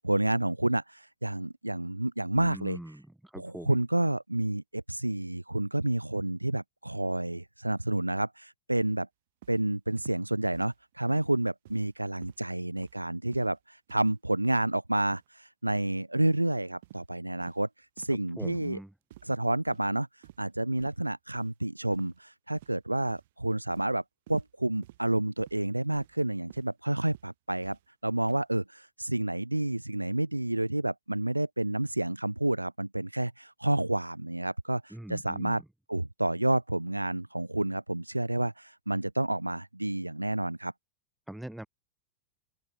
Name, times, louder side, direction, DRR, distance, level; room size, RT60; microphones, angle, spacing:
voice 1, 0.0-2.8 3.4-9.1 9.5-17.7 18.0-18.8 19.2-20.1 20.4-24.0 24.3-27.8 28.0-35.6 35.9-40.7, right 1 dB, 85° right, 0.5 m, -29 dB
voice 2, 2.3-3.8 18.4-18.9 34.9-35.6 41.3-41.7, right 1 dB, 5° right, 0.8 m, -42 dB
sound 1, 9.4-9.6 10.0-10.2 10.5-10.8 11.1-11.3 11.7-11.9 12.2-12.4 12.8-13.0 13.3-13.6 13.9-14.1 14.5-14.7 15.0-15.3 15.7-15.9 16.2-16.4 16.8-17.0 17.4-17.6 18.0-18.2 18.5-18.7 19.1-19.4 19.7-19.9 20.2-20.5 20.8-21.0 21.3-21.5 21.9-22.2 22.5-22.8 23.1-23.3 23.7-23.9 24.3-24.5 24.8-25.0 25.4-25.6 25.9-26.2 26.5-26.7 27.1-27.3 27.6-27.8 28.2-28.4, right 16 dB, 55° right, 5.1 m, -51 dB
open air
figure-of-eight pair, 90°, 0 cm